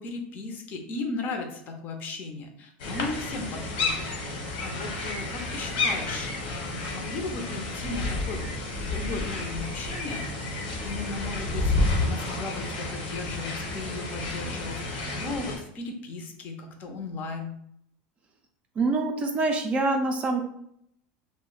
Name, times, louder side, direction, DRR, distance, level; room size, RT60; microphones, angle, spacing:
voice 1, 0.0-4.3 4.6-10.3 10.8-17.5, left 3 dB, 35° left, 4 dB, 0.5 m, -36 dB
sound 1, 2.8-15.6, left 2 dB, 80° left, 1.1 m, -31 dB
voice 2, 18.8-20.4, right 3 dB, 25° right, 3 dB, 0.4 m, -25 dB
2.6 x 2.1 x 3.8 m, 0.71 s
supercardioid pair, 140°, 5 cm